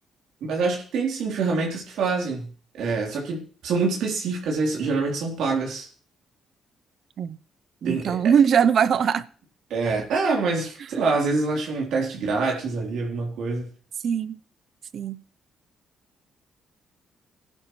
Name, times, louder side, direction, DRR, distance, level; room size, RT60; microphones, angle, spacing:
voice 1, 0.4-5.9 7.8-8.3 9.7-13.7, right 4 dB, 80° right, 3.4 m, -26 dB
voice 2, 7.8-9.2 14.0-14.3 14.9-15.2, right 7 dB, 60° right, 0.6 m, -21 dB
17.5 x 11.0 x 3.2 m
cardioid pair, 90°, 0 cm